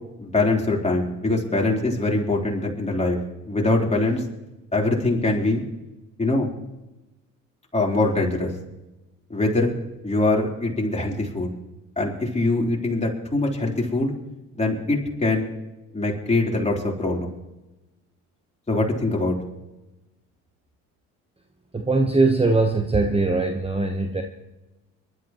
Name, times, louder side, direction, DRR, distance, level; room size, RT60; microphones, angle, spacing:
voice 1, 0.2-3.2 3.4-4.2 4.7-5.6 6.2-6.5 7.7-8.5 9.3-9.7 10.0-11.5 12.0-14.1 14.6-15.5 15.9-17.3 18.7-19.4, left 2 dB, 20° left, -2 dB, 4.0 m, -23 dB
voice 2, 21.7-24.2, right 3 dB, 15° right, 5 dB, 1.2 m, -21 dB
23.5 x 12.0 x 3.1 m, 1.0 s
supercardioid pair, 65°, 35 cm